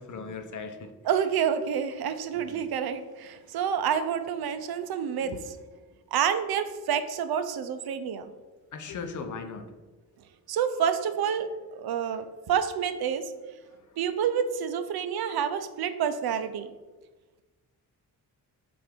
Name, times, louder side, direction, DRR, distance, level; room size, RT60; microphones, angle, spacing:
voice 1, 0.0-0.9 2.3-2.7 5.2-5.4 8.7-9.7 13.6-14.0, left 4 dB, 55° left, 7 dB, 0.7 m, -39 dB
voice 2, 1.1-5.6 6.1-8.3 10.5-13.3 14.0-16.7, right 8 dB, 75° right, 10 dB, 0.6 m, -28 dB
7.6 x 2.6 x 5.0 m, 1.2 s
wide cardioid pair, 155°, 37 cm